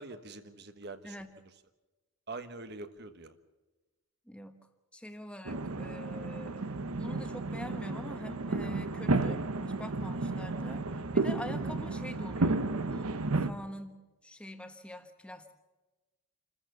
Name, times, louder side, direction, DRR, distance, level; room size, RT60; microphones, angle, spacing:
voice 1, 0.0-1.2 2.3-3.3, right 3 dB, 50° right, 10 dB, 1.3 m, -44 dB
voice 2, 1.0-1.4 4.3-4.6 4.9-15.5, equal, 5° left, 7 dB, 1.3 m, -45 dB
sound 1, 5.5-13.5, right 3 dB, 90° right, 1.0 m, -32 dB
28.0 x 14.5 x 6.9 m, 1.1 s
head